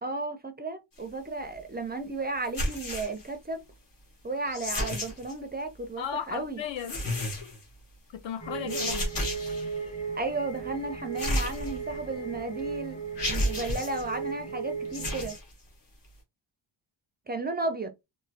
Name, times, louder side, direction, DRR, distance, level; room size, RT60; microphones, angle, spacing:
voice 1, 0.0-3.6 4.2-6.6 8.6-8.8 10.1-13.0 13.3-15.4 17.3-17.9, right 3 dB, 25° right, 0.3 m, -34 dB
sound 1, 2.4-3.3 4.4-5.3 6.8-7.6 8.7-9.7 11.2-12.1 12.6-12.7 13.2-14.0 14.8-15.4, left 1 dB, 45° left, 1.0 m, -31 dB
voice 2, 6.0-7.5 8.1-9.1, left 8 dB, 65° left, 0.6 m, -36 dB
sound 2, 8.4-15.4, right 5 dB, 15° left, 0.9 m, -36 dB
3.0 x 2.3 x 2.6 m
wide cardioid pair, 160°, 49 cm